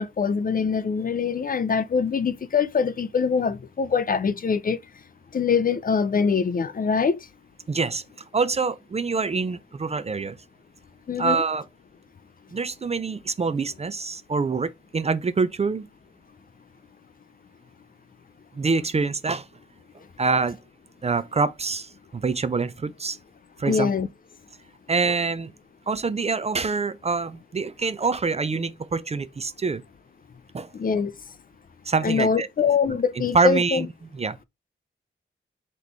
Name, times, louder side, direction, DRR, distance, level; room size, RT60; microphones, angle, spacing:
voice 1, 0.0-4.8 5.3-7.3 11.1-11.4 23.7-24.1 30.7-31.1 32.0-33.9, left 5 dB, 45° left, 0.4 m, -23 dB
voice 2, 7.7-8.0 8.3-10.4 11.2-11.6 12.5-15.9 18.5-19.5 20.2-20.6 21.0-23.2 23.6-23.9 24.9-25.5 25.9-29.8 30.5-30.7 31.9-32.5 32.9-33.9 34.1-34.4, right 4 dB, 30° right, 0.4 m, -25 dB
4.1 x 3.0 x 3.3 m
wide cardioid pair, 120°, 21 cm